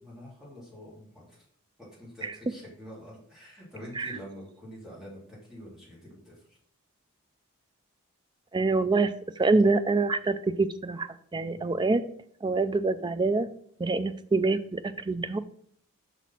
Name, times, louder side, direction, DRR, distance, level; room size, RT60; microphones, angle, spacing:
voice 1, 0.0-1.4 1.8-6.6 11.5-11.8, equal, ahead, -7 dB, 3.0 m, -46 dB
voice 2, 8.5-12.0 12.4-13.5 13.8-15.4, right 3 dB, 20° right, 11 dB, 0.3 m, -26 dB
6.0 x 4.2 x 5.6 m, 0.62 s
head